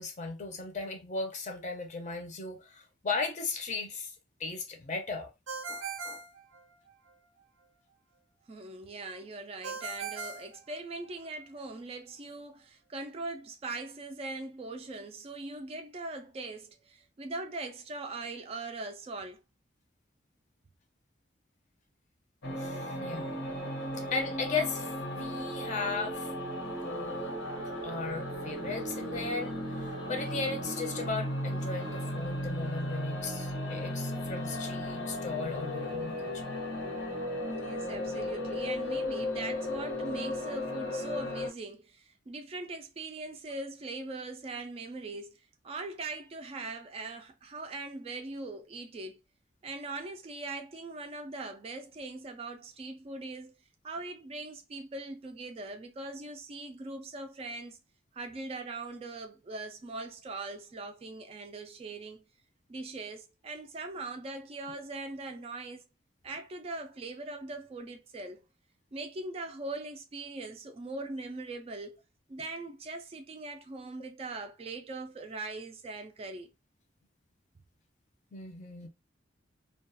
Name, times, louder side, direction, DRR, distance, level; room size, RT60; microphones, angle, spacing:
voice 1, 0.0-4.1 4.4-5.3 5.7-6.2 22.6-23.3 23.6-26.3 26.6-27.3 27.8-36.4 78.3-78.9, left 4 dB, 40° left, 0.5 m, -37 dB
Ringtone, 5.5-7.1 9.6-11.3, right 4 dB, 90° right, 0.5 m, -40 dB
voice 2, 8.5-19.4 37.5-49.2 49.6-53.6 53.8-57.8 58.1-62.3 62.7-65.8 66.2-68.4 68.9-72.0 72.3-76.5, right 2 dB, 30° right, 0.3 m, -41 dB
sound 1, 22.4-41.5, left 1 dB, 85° left, 0.8 m, -35 dB
2.3 x 2.3 x 2.5 m
head